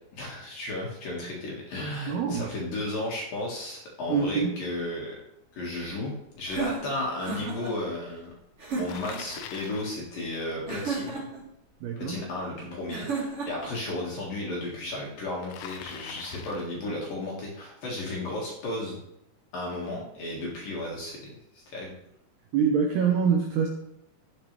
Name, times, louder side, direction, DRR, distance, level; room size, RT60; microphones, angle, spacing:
voice 1, 0.1-5.1 5.5-8.3 8.8-11.3 12.0-19.0 19.5-21.9, left 2 dB, 55° left, -3 dB, 3.1 m, -34 dB
voice 2, 2.1-2.5 4.1-4.6 11.8-12.2 22.5-23.7, right 6 dB, 75° right, 2 dB, 2.5 m, -25 dB
sound 1, 6.5-7.7 8.6-9.2 10.7-11.4 12.9-13.7, right 4 dB, 30° right, 3.3 m, -33 dB
Bicycle, 8.9-10.0 15.5-16.8, left 10 dB, 80° left, 2.6 m, -43 dB
12.5 x 9.4 x 3.4 m, 0.81 s
omnidirectional pair, 5.7 m